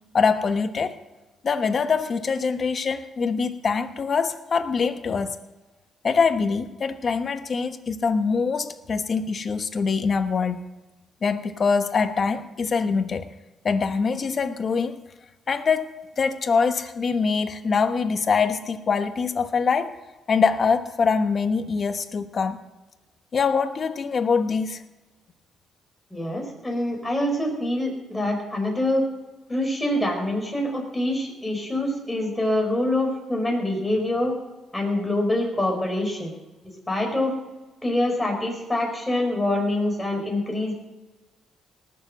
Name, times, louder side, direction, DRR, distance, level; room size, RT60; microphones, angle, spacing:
voice 1, 0.1-1.0 1.4-5.4 6.0-10.6 11.2-13.3 13.6-15.0 15.5-19.9 20.3-22.6 23.3-24.8, left 5 dB, 45° left, 10 dB, 1.1 m, -24 dB
voice 2, 26.1-29.0 29.5-34.3 34.7-36.3 36.9-37.4 37.8-40.7, left 1 dB, 10° left, 0 dB, 4.9 m, -25 dB
18.5 x 7.1 x 7.8 m, 1.1 s
cardioid pair, 90°, 0 cm